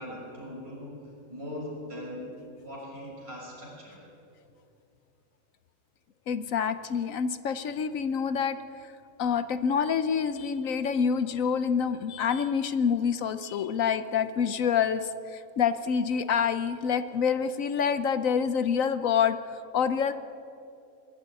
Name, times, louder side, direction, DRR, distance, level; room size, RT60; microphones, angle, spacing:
voice 1, 0.0-2.3 2.6-4.0, left 1 dB, 45° right, -4 dB, 6.2 m, -40 dB
voice 2, 6.3-8.6 9.2-19.4 19.7-20.1, left 7 dB, 70° left, 12 dB, 1.2 m, -27 dB
21.5 x 13.0 x 9.7 m, 2.8 s
omnidirectional pair, 1.5 m